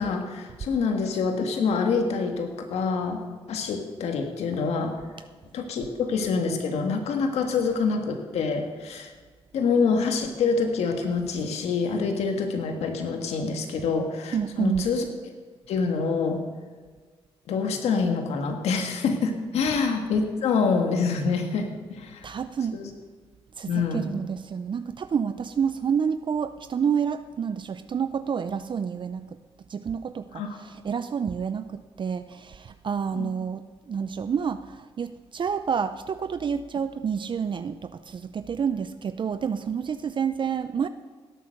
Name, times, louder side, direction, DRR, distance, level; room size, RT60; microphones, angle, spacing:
voice 1, 0.0-3.2 3.5-4.9 5.5-9.1 9.5-15.0 15.7-16.4 17.5-22.2 22.7-22.9 23.7-24.1 30.3-30.6 33.1-33.3, left 4 dB, 90° left, 4 dB, 1.7 m, -26 dB
voice 2, 14.3-14.9 22.2-22.8 23.6-29.4 29.7-40.9, right 7 dB, 50° right, 11 dB, 0.6 m, -29 dB
17.5 x 8.4 x 6.5 m, 1.4 s
cardioid pair, 75°, 11 cm